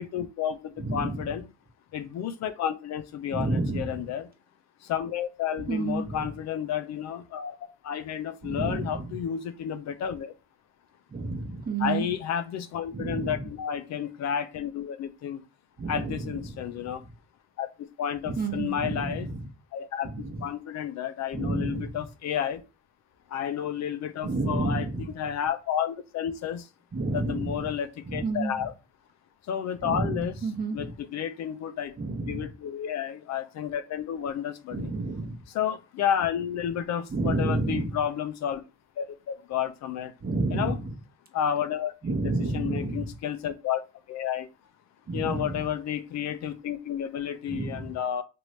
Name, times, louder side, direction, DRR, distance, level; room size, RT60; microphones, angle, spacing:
voice 1, 0.0-1.5 1.9-4.3 4.9-7.6 7.8-10.3 11.8-15.4 15.9-17.0 17.6-17.7 18.0-19.3 19.7-20.1 20.4-22.6 23.3-24.9 25.2-26.6 27.1-28.7 29.5-30.3 30.7-31.9 32.3-34.9 35.5-38.6 39.0-40.1 40.5-40.8 41.3-41.9 42.5-43.8 44.1-44.5 45.1-48.2, left 9 dB, 65° left, 0.5 m, -31 dB
voice 2, 0.8-1.2 3.3-4.1 5.7-6.2 8.4-9.1 11.1-12.1 12.9-13.5 15.8-16.9 18.3-19.5 20.1-20.4 21.3-22.0 24.2-25.1 26.9-27.7 28.1-28.5 29.8-30.9 32.0-32.5 34.7-35.4 37.1-38.0 40.2-41.0 42.0-43.1 45.1-45.6 47.5-47.9, right 3 dB, 30° right, 0.9 m, -30 dB
3.1 x 2.6 x 3.0 m
cardioid pair, 90°, 30 cm